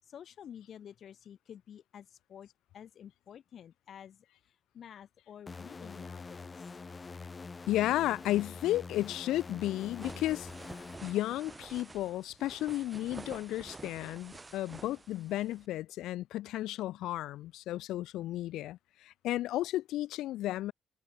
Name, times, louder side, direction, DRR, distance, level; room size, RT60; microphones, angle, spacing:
voice 1, 0.0-2.5 2.7-6.7, left 9 dB, 60° left, 6.8 m, -51 dB
sound 1, 5.5-11.9, left 4 dB, 30° left, 1.5 m, -46 dB
voice 2, 7.7-10.5 11.0-20.7, left 15 dB, 90° left, 0.6 m, -33 dB
sound 2, 9.8-15.7, right 3 dB, 20° right, 3.0 m, -49 dB
cardioid pair, 90°, 0 cm